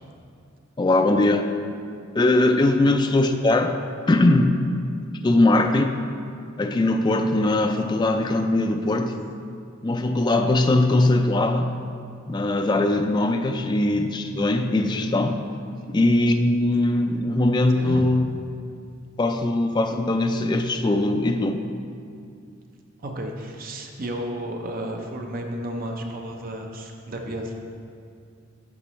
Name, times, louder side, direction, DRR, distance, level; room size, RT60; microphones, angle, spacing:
voice 1, 0.8-1.4 2.1-3.8 4.1-4.6 5.2-6.0 6.6-9.2 9.8-11.7 12.3-15.4 15.9-18.2 19.2-21.6, left 2 dB, 20° left, 5 dB, 0.3 m, -21 dB
voice 2, 23.0-27.5, right 1 dB, 45° right, 2 dB, 0.7 m, -32 dB
9.7 x 7.1 x 3.1 m, 2.4 s
head